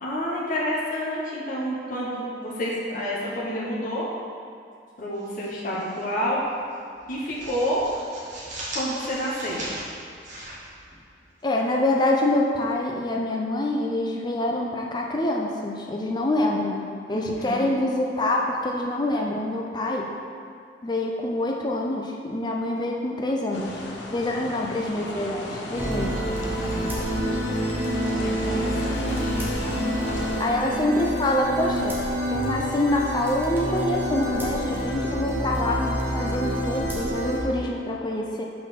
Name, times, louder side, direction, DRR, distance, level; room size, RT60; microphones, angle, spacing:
voice 1, 0.0-4.1 5.0-6.4 7.1-7.8 8.7-9.7 17.1-17.7 24.5-24.8 28.1-29.6 30.6-30.9, equal, 50° left, -6 dB, 1.2 m, -29 dB
sound 1, 5.1-6.0 6.3-6.5 6.9-11.4, right 1 dB, 45° right, 1.6 m, -38 dB
voice 2, 11.4-20.1 20.8-23.8 24.1-26.1 30.4-32.0 32.3-38.4, left 1 dB, 25° left, -1 dB, 0.5 m, -26 dB
sound 2, 23.5-30.4, left 1 dB, 75° left, 0.8 m, -36 dB
sound 3, 25.7-37.4, equal, 10° right, 1.2 m, -27 dB
5.6 x 4.3 x 5.9 m, 2.4 s
head